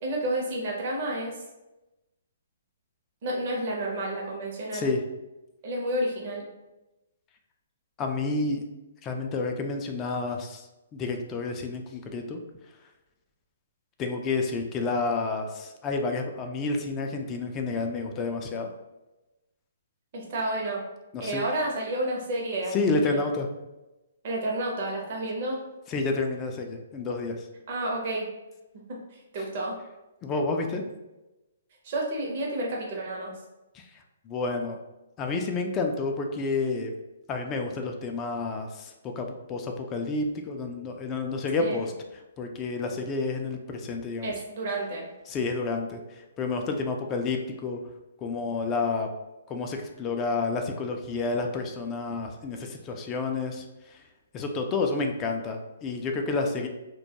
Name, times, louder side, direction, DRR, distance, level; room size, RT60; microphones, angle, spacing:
voice 1, 0.0-1.3 3.2-4.9 5.6-6.5 20.1-20.8 21.2-23.2 24.2-25.6 27.7-28.3 28.9-29.0 29.3-29.7 31.8-33.3 41.6-41.8 44.2-45.1, right 1 dB, 50° right, -2 dB, 0.6 m, -30 dB
voice 2, 8.0-8.6 9.0-10.7 10.9-12.4 14.0-18.7 21.1-21.5 22.7-23.5 25.9-27.5 30.2-30.8 33.7-34.8 35.2-36.9 37.3-41.9 42.4-44.3 45.3-47.8 48.2-49.1 49.5-54.0 54.3-56.7, left 3 dB, 25° left, 3 dB, 0.3 m, -30 dB
2.2 x 2.1 x 2.8 m, 1.0 s
hypercardioid pair, 135°, 0 cm